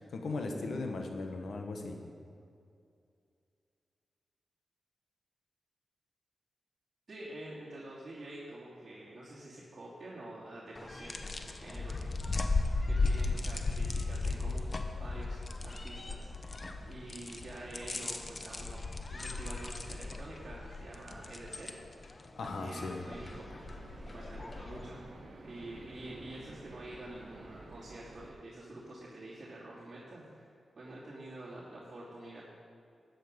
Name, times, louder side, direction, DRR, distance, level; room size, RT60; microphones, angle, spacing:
voice 1, 0.0-2.0 22.4-23.0, left 3 dB, 75° left, 3 dB, 1.5 m, -37 dB
voice 2, 7.1-12.2 12.8-14.7 15.0-16.5 16.9-18.8 19.1-21.7 22.4-23.8 24.0-25.0 25.4-30.5 30.7-32.4, right 1 dB, 45° right, -9 dB, 2.7 m, -47 dB
sound 1, 10.7-24.9, left 3 dB, 40° left, 1.0 m, -36 dB
sound 2, 23.1-28.3, right 2 dB, 65° right, 1.6 m, -51 dB
13.0 x 8.9 x 5.3 m, 2.4 s
cardioid pair, 70°, 0 cm